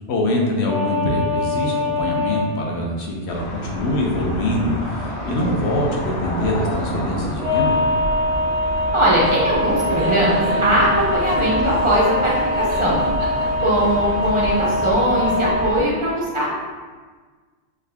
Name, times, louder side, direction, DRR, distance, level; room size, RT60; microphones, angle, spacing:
voice 1, 0.1-7.8, left 1 dB, 65° left, -1 dB, 0.8 m, -23 dB
sound 1, 0.7-2.5 7.4-15.7, left 1 dB, 90° right, 1.2 m, -23 dB
sound 2, 3.3-15.8, equal, 40° left, 0.5 m, -30 dB
voice 2, 8.9-13.0 13.6-16.5, equal, 50° right, -6 dB, 0.3 m, -20 dB
Laughter, 9.2-15.0, right 2 dB, 70° right, 0.8 m, -31 dB
3.6 x 2.1 x 3.3 m, 1.5 s
omnidirectional pair, 1.3 m